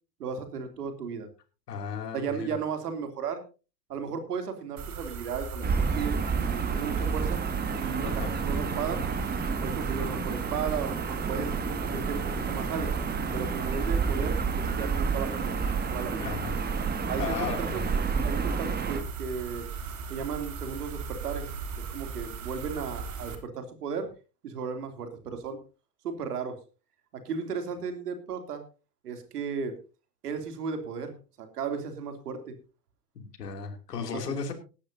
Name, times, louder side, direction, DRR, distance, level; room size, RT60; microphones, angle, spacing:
voice 1, 0.2-1.3 2.1-3.4 3.9-7.4 7.8-9.0 9.6-11.5 11.8-12.9 13.3-15.6 15.9-16.3 17.1-17.8 18.2-19.6 20.1-21.5 21.7-24.1 24.4-25.6 26.0-26.6 27.1-28.6 29.0-29.8 30.2-32.5 34.1-34.2, right 6 dB, 70° right, 7 dB, 3.0 m, -35 dB
voice 2, 1.7-2.6 8.0-8.3 16.2-16.6 17.2-17.8 33.1-34.5, left 6 dB, 75° left, 6 dB, 2.9 m, -35 dB
sound 1, 4.8-23.4, right 5 dB, 35° right, 3.1 m, -38 dB
Gull seagull / Ocean, 5.6-19.0, right 5 dB, 20° right, 1.9 m, -30 dB
18.5 x 13.0 x 2.7 m, 0.33 s
figure-of-eight pair, 85°, 48 cm